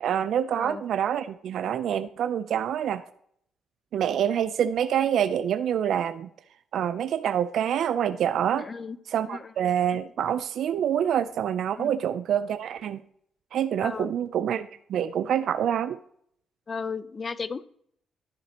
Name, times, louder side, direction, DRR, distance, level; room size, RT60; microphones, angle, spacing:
voice 1, 0.0-3.0 3.9-6.3 6.7-8.7 9.1-13.0 13.5-16.0, right 9 dB, 70° right, 12 dB, 0.5 m, -26 dB
voice 2, 8.5-9.0 9.3-9.5 11.8-11.9 13.8-14.1 16.7-17.6, left 5 dB, 35° left, 16 dB, 0.6 m, -34 dB
14.0 x 7.3 x 2.9 m, 0.67 s
cardioid pair, 90°, 0 cm